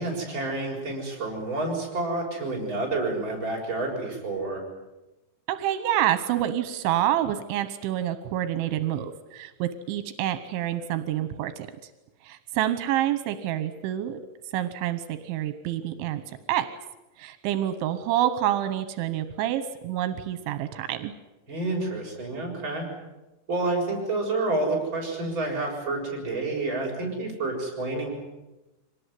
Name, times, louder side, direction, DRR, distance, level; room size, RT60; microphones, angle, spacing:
voice 1, 0.0-4.6 21.5-22.9 23.5-28.1, right 2 dB, 25° right, -1 dB, 7.3 m, -29 dB
voice 2, 5.5-11.7 12.2-14.2 14.5-16.2 16.5-16.7 17.2-21.1, right 12 dB, 85° right, 11 dB, 3.4 m, -27 dB
25.0 x 19.5 x 9.6 m, 1.0 s
omnidirectional pair, 5.2 m